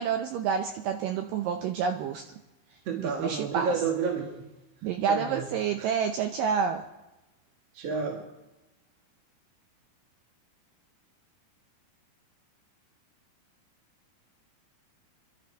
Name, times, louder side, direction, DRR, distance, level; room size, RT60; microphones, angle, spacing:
voice 1, 0.0-2.2 3.0-3.7 4.8-6.8, right 7 dB, 75° right, 5 dB, 2.0 m, -28 dB
voice 2, 2.9-4.5 5.1-5.5 5.8-5.9 7.7-8.2, right 5 dB, 50° right, 1 dB, 2.2 m, -30 dB
24.0 x 12.5 x 4.5 m, 0.99 s
omnidirectional pair, 4.6 m